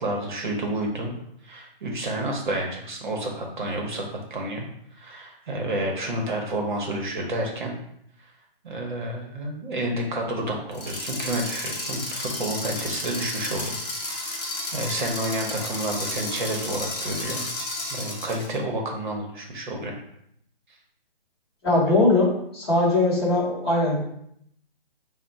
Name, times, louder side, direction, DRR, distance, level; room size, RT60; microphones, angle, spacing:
voice 1, 0.0-1.2 1.4-7.7 8.6-13.8 14.7-17.4 17.9-20.0, right 1 dB, 55° right, 0 dB, 0.8 m, -30 dB
sound 1, 10.7-18.5, left 2 dB, 45° left, 1.1 m, -32 dB
voice 2, 21.6-24.0, left 2 dB, 25° left, -5 dB, 0.8 m, -21 dB
3.5 x 2.1 x 4.0 m, 0.72 s
hypercardioid pair, 165°, 30 cm